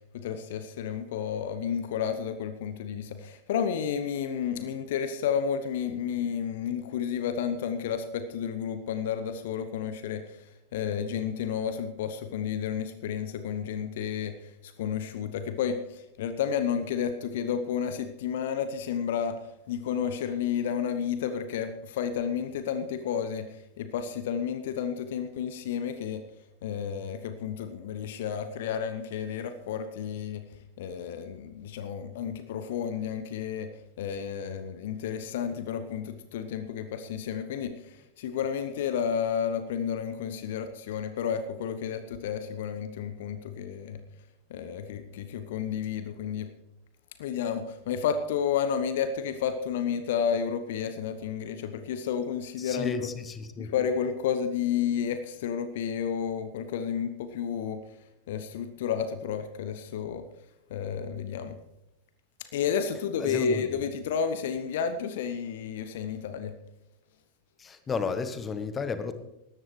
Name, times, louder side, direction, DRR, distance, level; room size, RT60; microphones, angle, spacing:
voice 1, 0.1-10.4 10.7-23.5 23.8-26.2 26.6-30.4 30.8-33.7 34.0-44.0 44.5-46.5 47.2-53.1 53.6-57.8 58.3-60.2 60.7-61.6 62.5-66.5, left 7 dB, 55° left, 10 dB, 0.9 m, -31 dB
voice 2, 52.6-53.7 63.2-63.7 67.6-69.1, left 5 dB, 20° left, 11 dB, 1.1 m, -33 dB
18.5 x 13.5 x 3.2 m, 0.90 s
figure-of-eight pair, 90°, 0 cm